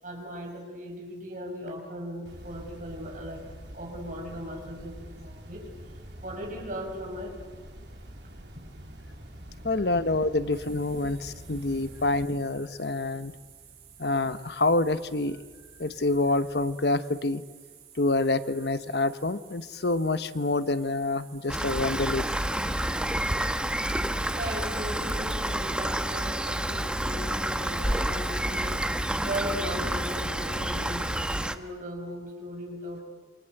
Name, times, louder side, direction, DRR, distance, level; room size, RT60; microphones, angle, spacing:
voice 1, 0.0-3.4 3.7-5.7 6.2-7.4 8.2-8.3 24.3-28.8 29.2-33.0, equal, 45° right, 1 dB, 6.6 m, -38 dB
sound 1, 2.2-12.2, equal, 80° right, 3.4 m, -46 dB
voice 2, 9.6-13.3 14.0-15.4 15.8-17.4 18.0-22.3, left 2 dB, 70° left, 12 dB, 1.1 m, -27 dB
sound 2, 10.5-30.3, right 8 dB, 60° right, 6.6 m, -53 dB
Rain, 21.5-31.6, right 1 dB, 5° right, 1.1 m, -29 dB
28.0 x 24.5 x 8.0 m, 1.3 s
head